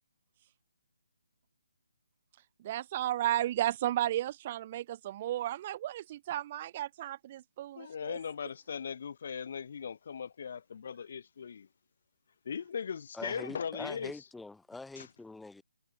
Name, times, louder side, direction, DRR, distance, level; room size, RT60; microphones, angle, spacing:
voice 1, 2.6-8.2, right 13 dB, 30° right, 1.5 m, -33 dB
voice 2, 7.8-11.7 12.4-14.2 15.0-15.1, left 7 dB, 50° left, 1.0 m, -39 dB
voice 3, 13.1-15.6, left 3 dB, 5° left, 1.8 m, -44 dB
hypercardioid pair, 160°, 0 cm